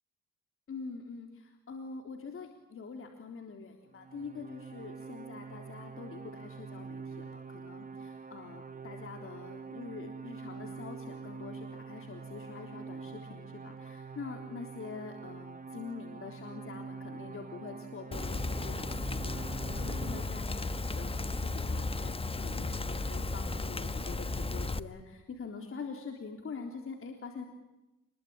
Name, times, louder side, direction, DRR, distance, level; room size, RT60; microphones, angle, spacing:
voice 1, 0.7-27.4, left 5 dB, 45° left, 4 dB, 3.7 m, -45 dB
sound 1, 3.9-20.2, right 5 dB, 30° right, 1.8 m, -45 dB
Rain, 18.1-24.8, left 3 dB, 20° left, 1.2 m, -34 dB
27.0 x 22.0 x 8.9 m, 0.99 s
cardioid pair, 90°, 30 cm